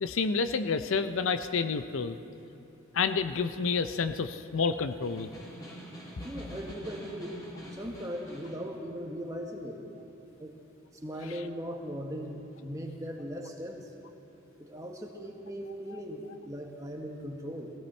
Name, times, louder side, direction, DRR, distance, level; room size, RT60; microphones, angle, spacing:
voice 1, 0.0-2.2 2.9-5.3, left 5 dB, 75° left, 10 dB, 0.5 m, -29 dB
Snare drum, 4.8-8.7, equal, 20° left, 2.5 m, -46 dB
voice 2, 6.2-7.4 7.7-9.8 10.4-10.5 10.9-13.9 14.6-17.7, equal, 15° right, 1 dB, 1.3 m, -39 dB
19.5 x 16.0 x 4.4 m, 2.9 s
head